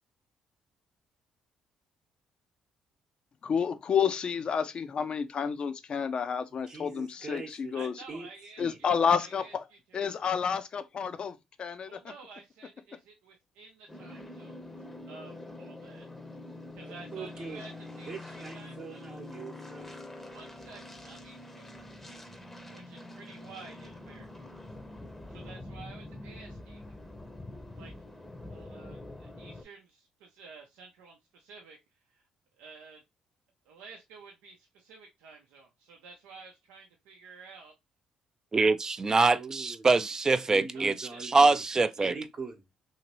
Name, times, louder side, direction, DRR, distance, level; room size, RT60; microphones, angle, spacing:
voice 1, 3.4-7.9 8.6-9.6 9.9-11.9, left 7 dB, 50° left, 0.5 m, -30 dB
voice 2, 6.7-7.7 8.1-8.3 8.6-8.8 16.8-17.6 18.1-19.9 39.3-39.9 40.5-41.6 42.0-42.6, right 4 dB, 50° right, 0.9 m, -42 dB
voice 3, 7.7-10.0 11.9-14.7 15.1-16.1 16.7-17.7 18.0-19.2 20.1-21.7 22.7-24.4 25.3-26.9 27.7-27.9 28.5-32.3 32.6-33.0 33.6-37.7 40.4-41.4 41.7-42.1, right 4 dB, 90° right, 0.6 m, -51 dB
sound 1, 13.9-29.6, left 2 dB, 10° left, 0.7 m, -45 dB
voice 4, 38.5-42.1, right 3 dB, 30° right, 0.4 m, -24 dB
2.9 x 2.8 x 2.9 m
supercardioid pair, 65°, 2 cm